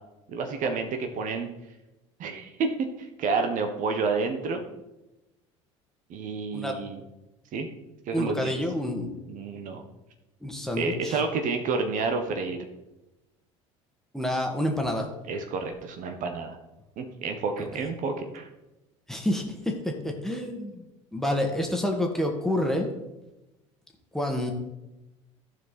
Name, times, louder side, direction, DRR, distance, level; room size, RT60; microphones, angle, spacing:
voice 1, 0.3-1.5 2.2-4.6 6.1-7.0 7.5-7.7 8.1-8.6 9.3-9.8 10.8-12.6 15.3-16.6 17.0-18.5, right 4 dB, 55° right, 5 dB, 1.2 m, -29 dB
voice 2, 8.1-9.2 10.4-11.2 14.1-15.1 17.6-17.7 19.1-20.9 21.1-22.9 24.1-24.5, left 1 dB, ahead, 2 dB, 1.8 m, -28 dB
14.5 x 4.8 x 4.2 m, 0.99 s
hypercardioid pair, 70°, 16 cm